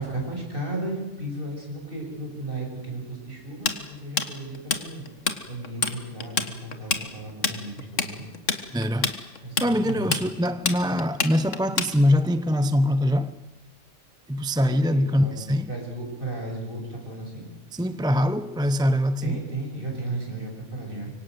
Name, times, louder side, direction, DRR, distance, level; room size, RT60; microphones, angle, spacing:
voice 1, 0.0-5.1 5.5-8.3 9.4-10.1 14.7-17.5 19.2-21.1, right 2 dB, 45° right, 7.2 m, -34 dB
Tools, 3.7-5.4 5.6-6.0 6.2-12.3, left 5 dB, 80° left, 2.0 m, -26 dB
voice 2, 8.7-9.2 9.6-13.4 14.3-15.7 17.7-19.5, equal, 5° right, 0.7 m, -23 dB
25.5 x 24.5 x 7.9 m
omnidirectional pair, 1.3 m